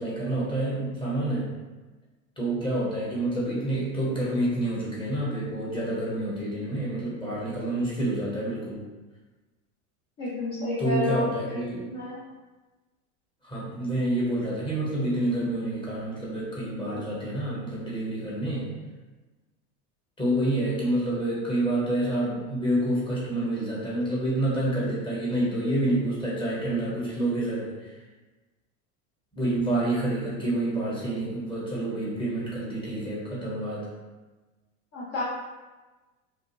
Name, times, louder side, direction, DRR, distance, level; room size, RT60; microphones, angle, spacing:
voice 1, 0.0-1.5 2.4-8.8 10.8-11.8 13.4-18.7 20.2-27.9 29.3-33.9, right 1 dB, 10° left, -7 dB, 1.0 m, -28 dB
voice 2, 10.2-11.6 11.8-12.2 34.9-35.2, left 2 dB, 35° left, -5 dB, 0.5 m, -30 dB
2.6 x 2.3 x 3.0 m, 1.2 s
hypercardioid pair, 105°, 43 cm